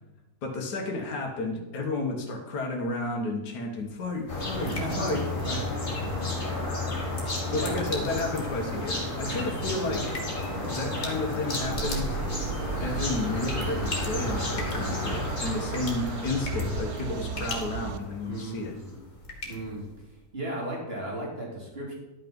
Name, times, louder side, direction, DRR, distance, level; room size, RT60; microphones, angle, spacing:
voice 1, 0.4-5.3 7.5-10.1 10.7-12.2 12.8-18.8, left 2 dB, 80° left, 1 dB, 1.7 m, -32 dB
sound 1, 3.8-20.2, left 2 dB, 50° left, 2.2 m, -43 dB
sound 2, 4.3-18.6, left 2 dB, 30° left, 2.2 m, -32 dB
voice 2, 4.6-5.1 5.4-5.6 7.5-7.8 9.2-9.5 18.2-19.0 19.4-19.8 20.3-21.9, right 1 dB, 35° right, -3 dB, 2.9 m, -35 dB
sound 3, 11.6-18.0, right 6 dB, 75° right, 1.2 m, -35 dB
11.5 x 5.9 x 5.2 m, 1.0 s
omnidirectional pair, 1.7 m